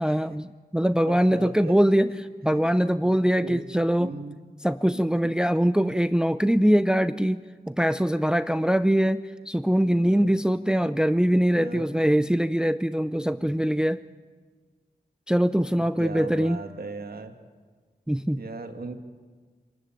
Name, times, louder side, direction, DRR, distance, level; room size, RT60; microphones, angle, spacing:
voice 1, 0.0-2.1 2.4-4.1 4.6-14.0 15.3-16.6 18.1-18.4, equal, 5° right, 13 dB, 0.6 m, -23 dB
voice 2, 1.1-1.8 3.0-3.1 3.4-3.7 4.0-4.4 4.9-5.3 10.0-10.3 11.5-11.9 13.4-13.5 15.6-17.3 18.4-19.0, right 4 dB, 70° right, 5 dB, 2.0 m, -38 dB
26.0 x 12.5 x 9.0 m, 1.4 s
cardioid pair, 55°, 16 cm